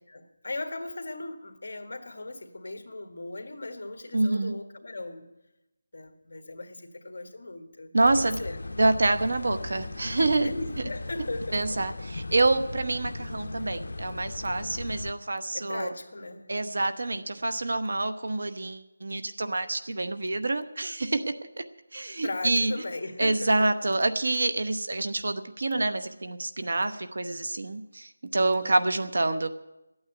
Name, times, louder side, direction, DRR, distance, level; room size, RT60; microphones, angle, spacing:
voice 1, 0.1-5.3 5.9-8.6 10.1-12.0 15.5-16.5 22.2-23.7 28.5-28.8, left 2 dB, 50° left, 5 dB, 1.7 m, -38 dB
voice 2, 4.1-4.5 7.9-8.4 8.8-10.6 11.5-15.9 16.5-21.6 21.9-22.7 23.2-29.5, right 2 dB, 55° right, 9 dB, 1.0 m, -27 dB
sound 1, 8.0-15.1, left 2 dB, 65° left, 0.7 m, -38 dB
13.0 x 8.9 x 9.1 m, 0.95 s
figure-of-eight pair, 180°, 0 cm